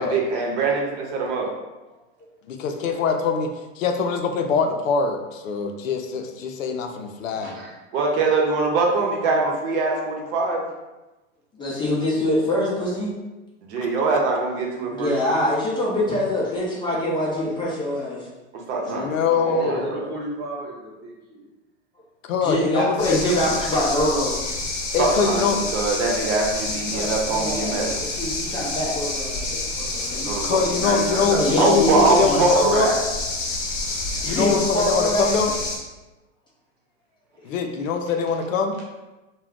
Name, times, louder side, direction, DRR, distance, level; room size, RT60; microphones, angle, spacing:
voice 1, 0.0-1.5 7.9-10.6 13.6-15.2 18.5-20.0 25.0-27.9 30.2-33.0, right 3 dB, 60° right, 0 dB, 0.8 m, -23 dB
voice 2, 2.5-3.5 3.8-7.5 18.9-19.9 22.2-23.2 24.9-25.6 30.4-32.9 34.2-35.5 37.4-38.8, left 5 dB, 90° left, 5 dB, 0.5 m, -23 dB
voice 3, 7.2-7.8 16.1-16.2 19.6-21.5 37.4-37.5, right 2 dB, 30° right, -4 dB, 0.8 m, -35 dB
voice 4, 11.6-13.1 14.9-18.3 22.4-24.3 26.9-30.4 30.7-30.9 31.3-32.4 34.2-35.4 37.5-37.6, left 1 dB, 15° left, -6 dB, 0.5 m, -24 dB
sound 1, 23.0-35.8, left 2 dB, 55° left, 0.9 m, -28 dB
2.3 x 2.2 x 3.5 m, 1.1 s
hypercardioid pair, 130°, 38 cm